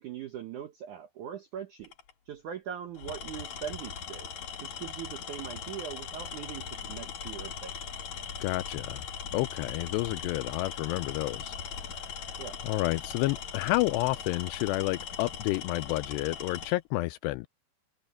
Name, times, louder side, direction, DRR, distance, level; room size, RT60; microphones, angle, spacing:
voice 1, 0.0-1.9 2.3-4.3 4.6-7.8 12.4-12.6, right 9 dB, 75° right, 1.8 m, -41 dB
Tools, 1.8-2.1 2.9-16.8, left 7 dB, 50° left, 2.8 m, -40 dB
voice 2, 8.4-9.1 9.3-11.6 11.9-12.0 12.6-17.5, left 19 dB, 85° left, 2.5 m, -30 dB
omnidirectional pair, 5.1 m